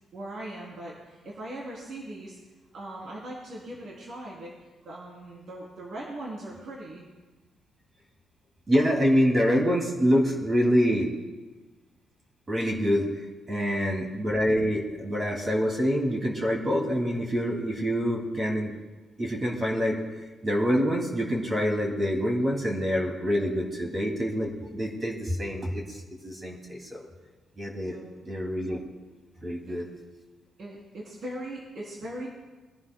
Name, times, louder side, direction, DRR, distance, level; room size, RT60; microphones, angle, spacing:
voice 1, 0.1-2.4 2.7-7.1 13.5-13.8 23.8-24.0 27.8-28.1 29.7-29.8 30.6-32.3, right 1 dB, 60° right, -5 dB, 3.2 m, -40 dB
voice 2, 8.7-11.1 12.5-13.1 13.5-18.7 19.2-27.1 27.6-28.0 28.2-28.8 29.4-29.9, equal, 30° right, 0 dB, 2.4 m, -26 dB
25.5 x 11.0 x 2.2 m, 1.2 s
cardioid pair, 90°, 0 cm